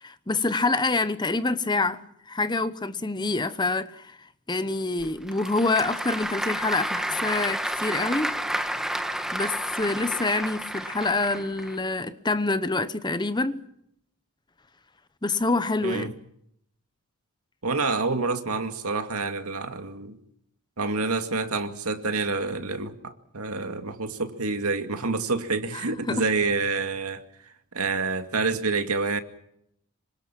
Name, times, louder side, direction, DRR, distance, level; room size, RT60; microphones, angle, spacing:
voice 1, 0.0-4.2 4.5-8.4 9.3-13.6 15.2-16.2 25.7-26.2, left 3 dB, 20° left, 0.9 m, -26 dB
Applause / Crowd, 5.0-11.8, right 1 dB, ahead, 1.2 m, -31 dB
voice 2, 17.6-20.2 20.8-27.2 27.7-29.2, right 3 dB, 85° right, 2.3 m, -27 dB
26.5 x 25.0 x 6.0 m
head